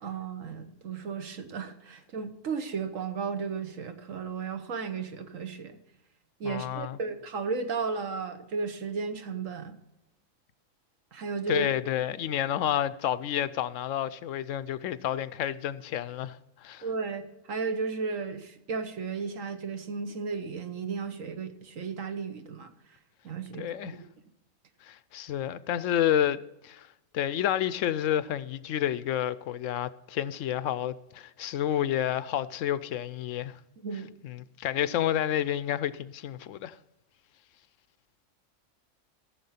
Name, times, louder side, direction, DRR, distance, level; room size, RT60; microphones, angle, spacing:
voice 1, 0.0-5.8 6.4-9.7 11.1-11.7 16.8-22.7 23.2-24.0 33.8-34.1, right 5 dB, 80° right, 1.5 m, -34 dB
voice 2, 6.4-7.0 11.5-16.9 23.6-24.0 24.8-26.9 27.1-33.6 34.2-36.8, left 11 dB, 75° left, 0.9 m, -30 dB
14.5 x 7.4 x 5.6 m
omnidirectional pair, 1.3 m